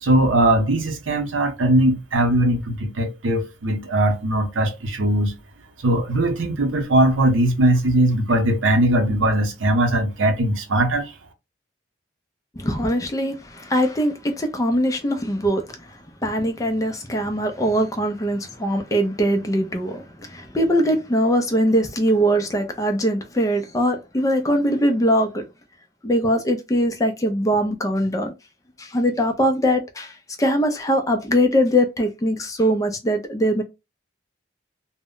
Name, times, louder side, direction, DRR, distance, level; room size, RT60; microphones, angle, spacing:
voice 1, 0.0-5.3 5.8-11.1, right 1 dB, 85° right, 0.7 m, -20 dB
voice 2, 12.6-25.4 26.0-28.3 28.8-33.6, equal, 15° left, 0.3 m, -22 dB
2.1 x 2.0 x 3.6 m
head